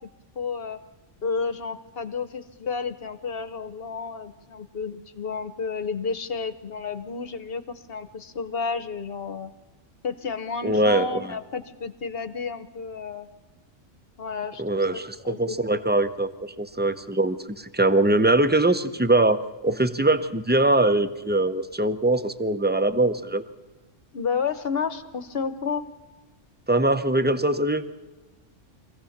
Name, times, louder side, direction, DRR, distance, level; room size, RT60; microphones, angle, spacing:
voice 1, 0.3-0.8 1.2-9.5 10.0-13.3 14.2-15.8 24.1-25.8, left 5 dB, 50° left, 12 dB, 1.2 m, -31 dB
voice 2, 10.6-11.3 14.6-23.5 26.7-27.9, right 2 dB, 10° right, 12 dB, 0.5 m, -22 dB
24.5 x 16.0 x 7.2 m, 1.1 s
omnidirectional pair, 1.3 m